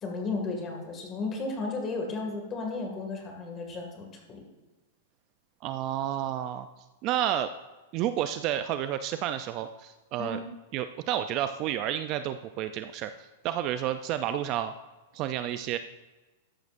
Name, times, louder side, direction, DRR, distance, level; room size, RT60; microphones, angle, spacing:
voice 1, 0.0-4.4 10.2-10.4, left 3 dB, 20° left, 2 dB, 2.0 m, -34 dB
voice 2, 5.6-6.7 7.0-7.5 7.9-10.4 10.7-14.7 15.1-15.8, right 11 dB, 30° right, 10 dB, 0.4 m, -30 dB
14.0 x 10.5 x 2.5 m, 1.2 s
supercardioid pair, 170°, 0 cm